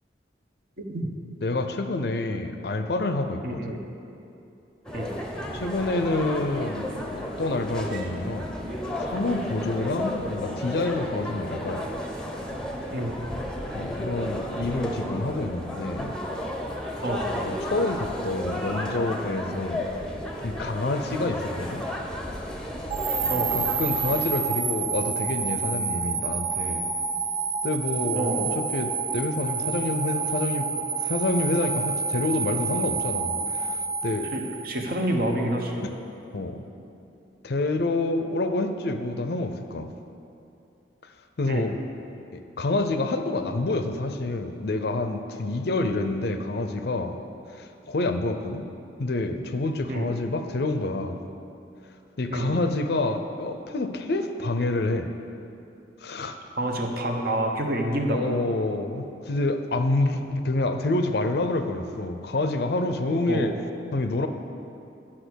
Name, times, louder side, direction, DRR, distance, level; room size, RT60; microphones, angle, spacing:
voice 1, 0.8-1.1 3.4-3.8 4.9-5.2 9.8-10.0 12.9-13.2 17.0-17.3 23.3-23.6 28.1-28.6 34.3-35.8 41.5-41.7 49.9-50.1 52.3-52.6 56.6-58.4 63.3-63.6, right 1 dB, 50° right, 2 dB, 1.0 m, -28 dB
voice 2, 1.4-3.7 5.5-8.5 9.0-11.9 13.7-16.1 17.3-19.9 20.4-21.8 23.5-26.9 27.6-34.3 36.3-36.6 37.4-39.9 41.4-41.7 42.3-47.1 47.5-48.7 49.0-51.2 52.2-55.1 56.0-56.4 58.1-63.5 63.9-64.3, left 2 dB, 60° left, 7 dB, 0.6 m, -28 dB
sound 1, 4.9-24.3, left 1 dB, 5° left, 0.8 m, -33 dB
sound 2, 22.9-35.1, right 5 dB, 30° right, 0.6 m, -29 dB
10.0 x 5.9 x 6.3 m, 2.7 s
head